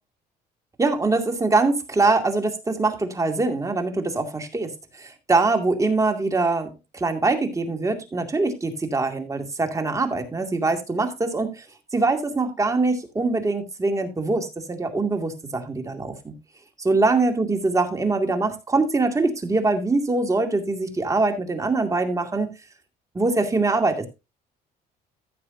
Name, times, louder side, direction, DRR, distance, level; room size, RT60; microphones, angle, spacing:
voice 1, 0.8-4.7 5.0-11.7 11.9-16.3 16.9-22.5 23.1-24.1, right 3 dB, 20° right, 4 dB, 2.3 m, -23 dB
15.0 x 7.6 x 2.7 m, 0.25 s
cardioid pair, 110°, 17 cm